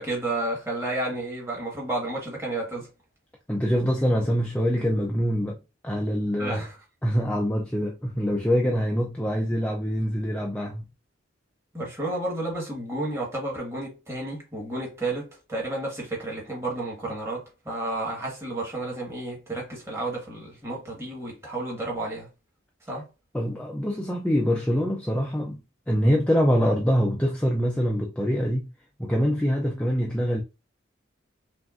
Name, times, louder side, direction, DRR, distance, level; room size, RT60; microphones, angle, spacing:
voice 1, 0.0-2.9 6.4-6.8 11.7-22.3 22.9-23.1, right 2 dB, 15° right, 1.6 m, -31 dB
voice 2, 3.5-5.6 5.8-6.6 7.0-10.8 23.3-28.7 29.0-30.4, equal, 5° left, 0.5 m, -24 dB
5.6 x 2.6 x 2.5 m
head